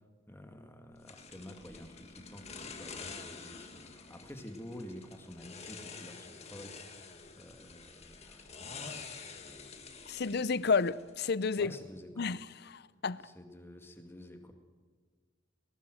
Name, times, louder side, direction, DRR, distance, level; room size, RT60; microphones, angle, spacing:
voice 1, 0.3-9.1 9.4-9.9 10.2-10.5 11.6-12.3 13.2-14.5, left 1 dB, 10° left, 2.1 m, -50 dB
sound 1, 1.1-11.2, left 4 dB, 35° left, 1.9 m, -48 dB
voice 2, 10.1-11.7 12.2-12.4 12.6-13.2, left 4 dB, 55° left, 0.6 m, -31 dB
19.5 x 19.0 x 7.7 m
head